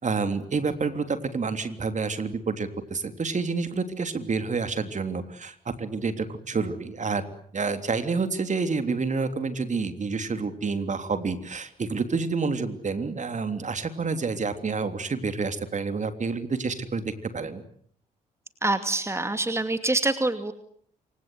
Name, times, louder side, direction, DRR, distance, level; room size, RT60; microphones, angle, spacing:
voice 1, 0.0-7.2 7.5-17.6, right 4 dB, 40° right, 9 dB, 3.4 m, -28 dB
voice 2, 18.6-20.5, right 2 dB, 15° right, 9 dB, 2.5 m, -25 dB
27.0 x 25.5 x 8.1 m, 0.64 s
hypercardioid pair, 45°, 19 cm